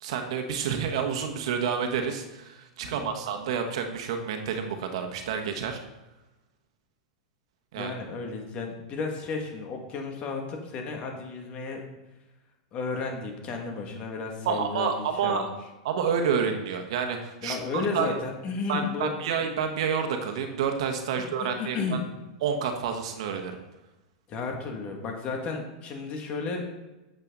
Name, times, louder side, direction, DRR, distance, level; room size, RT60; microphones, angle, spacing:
voice 1, 0.0-5.8 7.7-7.9 14.4-15.5 15.8-18.1 18.7-22.0 22.4-23.6, right 6 dB, 70° right, 5 dB, 1.3 m, -29 dB
voice 2, 7.8-11.8 12.7-15.5 17.4-19.4 21.1-22.0 24.3-26.7, left 4 dB, 40° left, 2 dB, 2.2 m, -33 dB
8.5 x 7.7 x 4.0 m, 1.0 s
hypercardioid pair, 115°, 3 cm